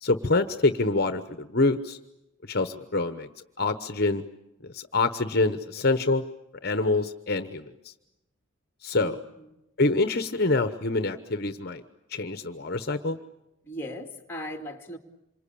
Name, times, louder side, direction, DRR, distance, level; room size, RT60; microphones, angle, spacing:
voice 1, 0.0-2.0 2.4-3.3 3.6-4.2 4.6-6.2 6.6-7.9 8.8-9.2 9.8-11.8 12.1-13.2, left 3 dB, 45° left, 9 dB, 1.0 m, -26 dB
voice 2, 8.9-9.6 13.6-15.0, equal, 10° left, 3 dB, 2.5 m, -38 dB
27.5 x 24.5 x 8.5 m, 0.94 s
head